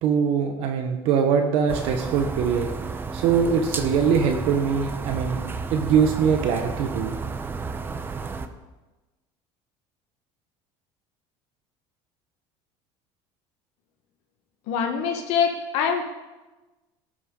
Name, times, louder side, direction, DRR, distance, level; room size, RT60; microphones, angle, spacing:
voice 1, 0.0-2.7 3.1-5.4 5.7-7.1, right 6 dB, 60° right, 4 dB, 1.2 m, -22 dB
sound 1, 1.7-8.5, right 4 dB, 20° right, 0.8 m, -32 dB
voice 2, 14.7-16.0, left 6 dB, 65° left, 4 dB, 1.3 m, -24 dB
17.5 x 11.0 x 3.8 m, 1.1 s
cardioid pair, 150°, 12 cm